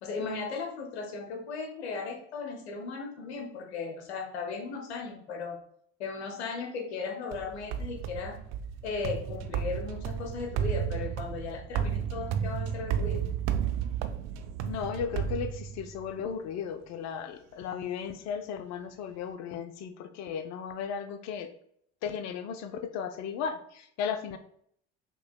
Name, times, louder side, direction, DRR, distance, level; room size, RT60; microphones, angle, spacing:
voice 1, 0.0-5.6 6.0-8.4 8.8-13.2, left 4 dB, 85° left, 3 dB, 0.9 m, -36 dB
sound 1, 7.3-16.1, right 8 dB, 55° right, 0.5 m, -33 dB
voice 2, 14.6-21.5 22.0-24.4, left 7 dB, 55° left, 8 dB, 0.6 m, -35 dB
5.4 x 3.0 x 2.2 m, 0.65 s
hypercardioid pair, 60°, 32 cm